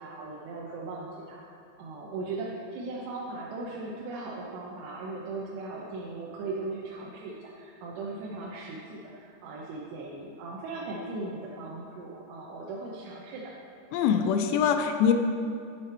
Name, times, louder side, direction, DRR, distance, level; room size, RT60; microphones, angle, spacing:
voice 1, 0.0-13.5, right 3 dB, 80° right, -4 dB, 2.9 m, -38 dB
voice 2, 13.9-15.1, left 7 dB, 80° left, 6 dB, 2.5 m, -23 dB
11.0 x 7.5 x 4.4 m, 2.6 s
omnidirectional pair, 5.1 m